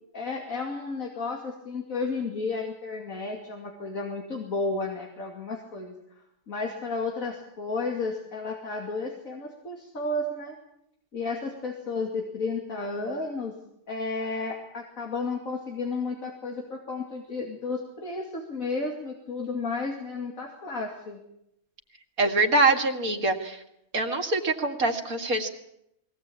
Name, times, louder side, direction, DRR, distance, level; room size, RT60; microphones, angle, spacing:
voice 1, 0.1-5.9 6.5-10.6 11.1-13.5 13.9-21.2, left 3 dB, 65° left, 1 dB, 2.9 m, -32 dB
voice 2, 22.2-23.6 23.9-25.5, right 2 dB, 70° right, 4 dB, 2.6 m, -24 dB
22.0 x 18.0 x 8.7 m, 0.80 s
omnidirectional pair, 1.5 m